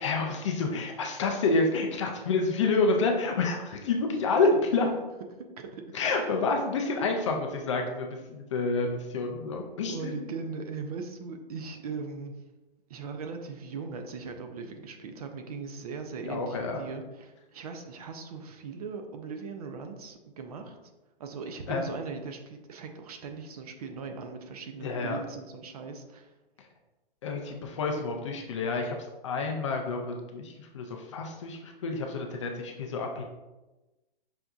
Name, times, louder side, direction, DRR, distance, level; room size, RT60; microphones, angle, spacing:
voice 1, 0.0-4.9 5.9-10.3 16.3-16.8 21.7-21.9 24.8-25.2 27.2-29.0 29.2-33.2, left 3 dB, 35° left, 2 dB, 0.4 m, -28 dB
voice 2, 5.6-6.4 9.9-12.3 12.9-20.8 21.2-26.3, right 4 dB, 40° right, 5 dB, 0.4 m, -39 dB
5.7 x 2.6 x 2.3 m, 1.1 s
hypercardioid pair, 150°, 29 cm